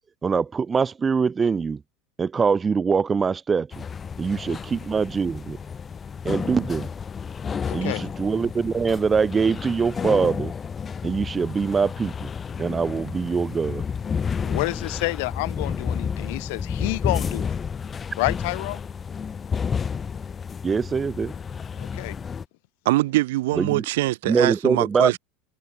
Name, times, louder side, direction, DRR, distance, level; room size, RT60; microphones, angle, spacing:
voice 1, 0.2-1.8 2.2-3.7 4.2-5.6 6.2-6.9 7.7-10.5 11.0-12.3 12.6-13.9 20.6-21.3 23.5-23.9 24.2-25.2, right 5 dB, 20° right, 0.3 m, -23 dB
sound 1, 3.7-22.4, left 6 dB, 20° left, 1.1 m, -31 dB
voice 2, 7.7-8.0 14.4-17.5 18.2-18.8 21.8-22.1, left 26 dB, 70° left, 1.1 m, -29 dB
voice 3, 22.9-25.2, right 18 dB, 85° right, 0.5 m, -23 dB
supercardioid pair, 145°, 0 cm